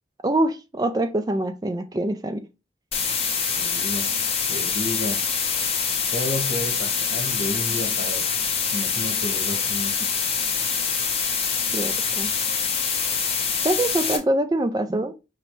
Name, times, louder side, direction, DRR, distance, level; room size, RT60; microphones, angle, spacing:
voice 1, 0.2-2.5 11.7-12.3 13.6-15.1, right 1 dB, 20° right, 0.3 m, -24 dB
sound 1, 2.9-14.2, left 6 dB, 35° left, 0.8 m, -25 dB
voice 2, 3.6-4.1 4.5-5.2 6.1-8.4 8.7-10.1, left 1 dB, 70° left, 1.2 m, -31 dB
5.0 x 3.2 x 3.0 m
head